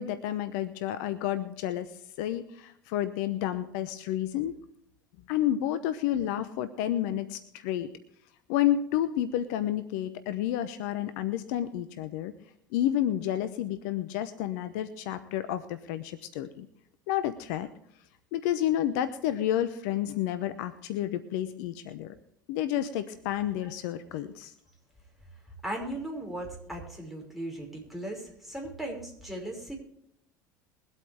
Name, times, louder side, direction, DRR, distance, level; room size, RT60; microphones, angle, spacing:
voice 1, 0.0-1.9 2.2-4.6 5.3-7.9 8.5-12.3 12.7-16.7 17.1-17.7 18.3-22.1 22.5-24.5, left 11 dB, 65° left, 12 dB, 0.9 m, -30 dB
voice 2, 25.6-29.7, right 1 dB, ahead, -1 dB, 5.6 m, -37 dB
22.5 x 8.4 x 3.4 m, 0.72 s
hypercardioid pair, 70°, 10 cm